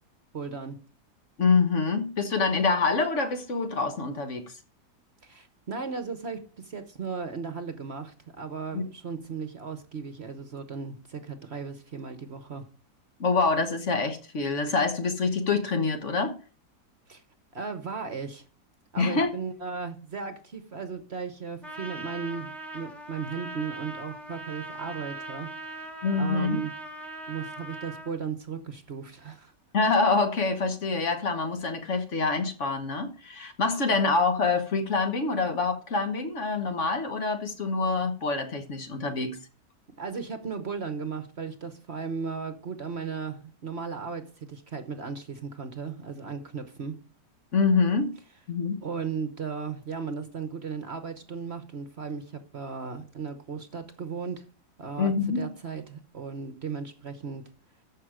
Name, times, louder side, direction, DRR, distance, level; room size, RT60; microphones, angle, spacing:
voice 1, 0.3-0.8 5.2-12.7 17.1-17.2 17.5-18.4 18.9-25.9 26.2-26.7 27.3-29.5 39.1-39.2 40.0-47.0 48.8-54.5 54.8-57.5, right 5 dB, 45° right, 1.1 m, -36 dB
voice 2, 1.4-4.5 8.7-8.8 13.2-16.4 19.0-19.3 26.0-26.6 29.7-39.4 47.5-48.1 48.5-48.8 55.0-55.4, left 4 dB, 50° left, 1.4 m, -26 dB
Trumpet, 21.6-28.1, right 2 dB, ahead, 1.4 m, -40 dB
14.0 x 5.8 x 4.9 m
omnidirectional pair, 1.7 m